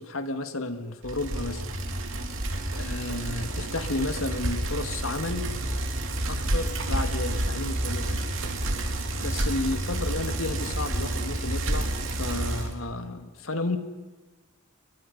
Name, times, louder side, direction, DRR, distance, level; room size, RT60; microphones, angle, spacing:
voice 1, 0.0-1.7 2.7-5.4 6.3-8.1 9.2-13.8, left 2 dB, 90° left, 8 dB, 2.1 m, -32 dB
Bicycle, 1.0-12.7, right 1 dB, 70° right, 3.0 m, -29 dB
29.5 x 23.0 x 5.4 m, 1.2 s
head